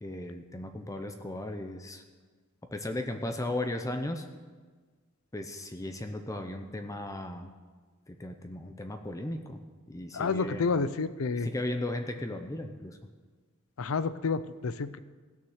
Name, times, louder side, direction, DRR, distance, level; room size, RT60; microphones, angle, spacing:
voice 1, 0.0-2.0 2.7-4.3 5.3-7.5 8.1-9.6 9.9-10.6 11.3-13.0, left 1 dB, 15° left, 6 dB, 0.7 m, -36 dB
voice 2, 10.1-11.5 13.8-15.0, left 4 dB, 75° left, 14 dB, 0.5 m, -29 dB
17.0 x 6.5 x 6.5 m, 1.4 s
head